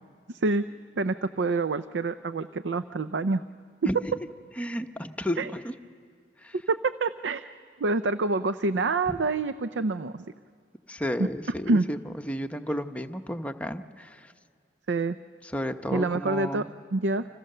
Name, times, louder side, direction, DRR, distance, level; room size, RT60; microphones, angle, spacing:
voice 1, 0.3-0.6 1.0-3.4 5.4-5.5 6.7-7.5 7.8-10.3 11.7-11.9 14.9-15.2 15.9-16.6 16.9-17.3, right 3 dB, 75° right, 12 dB, 0.6 m, -27 dB
voice 2, 4.6-5.7 6.4-6.5 9.1-9.2 10.9-14.3 15.4-16.7, equal, 10° left, 5 dB, 0.9 m, -32 dB
30.0 x 26.5 x 6.7 m, 2.3 s
head